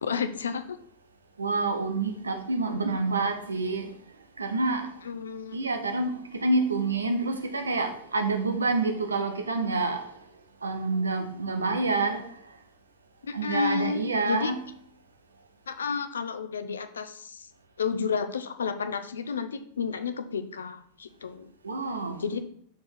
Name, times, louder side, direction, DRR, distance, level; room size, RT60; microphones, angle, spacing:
voice 1, 0.0-0.8 5.0-5.5 13.3-14.0 14.3-14.5 15.7-17.5 17.8-21.5 22.2-22.4, left 6 dB, 70° left, 0.7 m, -31 dB
voice 2, 1.4-3.9 4.4-4.9 5.5-10.2 10.6-12.4 13.3-14.6 21.6-22.2, right 3 dB, 75° right, 1.0 m, -28 dB
6.2 x 4.8 x 5.7 m
figure-of-eight pair, 90°, 0 cm